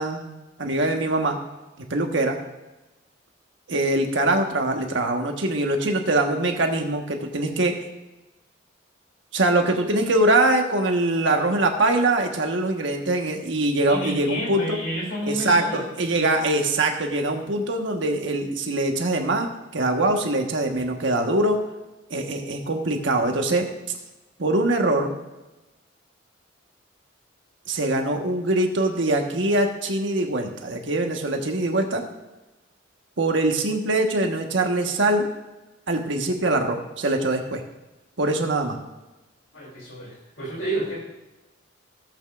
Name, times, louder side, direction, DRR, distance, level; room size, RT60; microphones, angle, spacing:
voice 1, 0.0-1.4 1.9-2.4 3.7-7.7 9.3-14.8 15.3-21.6 22.1-23.7 24.4-25.1 27.7-32.0 33.2-35.3 35.9-37.6 38.2-38.8, right 2 dB, 70° right, 3 dB, 1.4 m, -23 dB
voice 2, 13.9-15.8 20.7-20.8 39.5-41.0, right 1 dB, 80° left, -2 dB, 3.0 m, -30 dB
16.0 x 8.2 x 2.5 m, 1.1 s
head